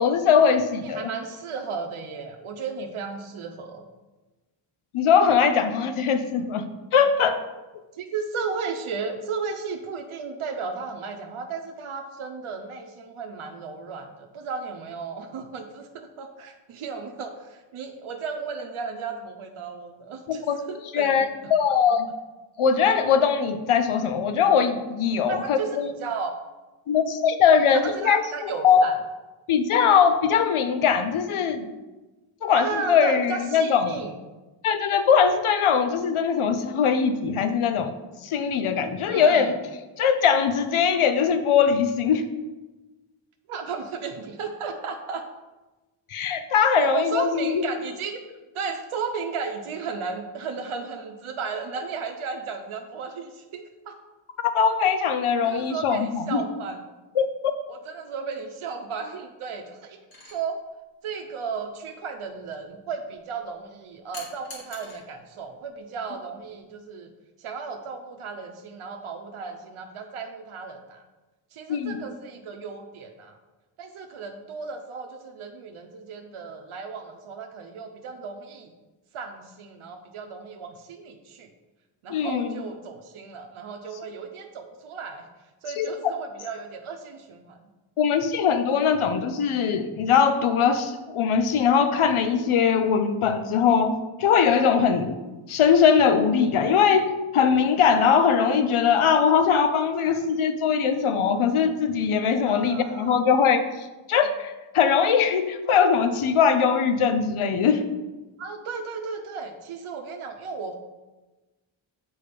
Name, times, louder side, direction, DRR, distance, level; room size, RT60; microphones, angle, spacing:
voice 1, 0.0-1.1 4.9-6.7 6.9-7.4 20.3-20.6 20.9-22.1 22.6-25.9 26.9-28.9 29.5-31.7 32.4-34.0 34.6-38.0 38.2-39.5 40.0-42.2 46.1-47.7 54.4-56.4 57.2-57.5 71.7-72.0 82.1-82.6 85.8-85.9 88.0-95.1 95.5-107.9, left 7 dB, 90° left, 9 dB, 0.8 m, -21 dB
voice 2, 0.8-3.9 7.9-20.4 20.7-21.5 25.3-26.3 27.5-29.0 32.5-34.2 39.0-39.5 43.5-45.2 46.8-48.2 48.5-54.0 55.4-56.8 57.7-60.0 60.2-60.6 61.0-67.1 67.4-71.0 71.5-73.4 73.8-78.7 79.1-81.5 82.0-85.3 85.6-87.6 99.9-100.3 102.5-103.2 108.4-110.8, right 5 dB, 90° right, 4 dB, 0.8 m, -34 dB
sound 1, 60.1-60.4 64.1-65.0 66.4-66.6, left 2 dB, 45° left, 2.1 m, -42 dB
6.9 x 5.0 x 5.1 m, 1.1 s
wide cardioid pair, 110°, 48 cm